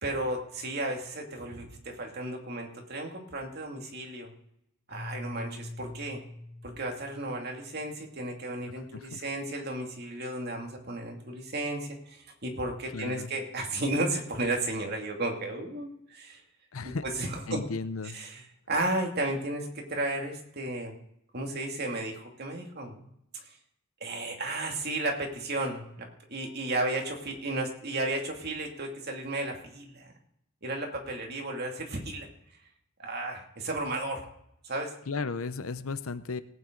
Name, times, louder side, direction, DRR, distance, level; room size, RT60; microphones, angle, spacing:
voice 1, 0.0-4.3 4.9-6.2 6.6-16.4 16.8-17.6 18.1-20.9 21.3-23.1 24.0-30.1 30.6-32.3 33.0-34.2 34.6-34.9, right 2 dB, 50° right, 1 dB, 2.5 m, -33 dB
Keyboard (musical), 4.9-8.0, left 2 dB, 65° left, 4.3 m, -44 dB
voice 2, 12.9-13.3 16.7-17.0 17.5-18.2 35.1-36.4, left 4 dB, 85° left, 13 dB, 0.8 m, -34 dB
18.0 x 9.2 x 3.9 m, 0.77 s
head